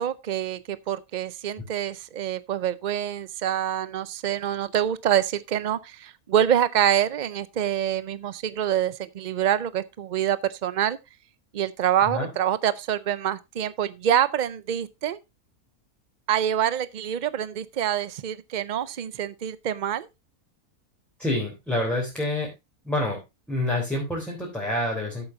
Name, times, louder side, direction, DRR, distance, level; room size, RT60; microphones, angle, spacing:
voice 1, 0.0-11.0 11.5-15.2 16.3-20.1, right 10 dB, 85° right, 0.4 m, -26 dB
voice 2, 21.2-22.5 22.8-23.2 23.5-25.3, left 1 dB, ahead, 3.6 m, -27 dB
13.5 x 8.0 x 2.7 m
omnidirectional pair, 1.6 m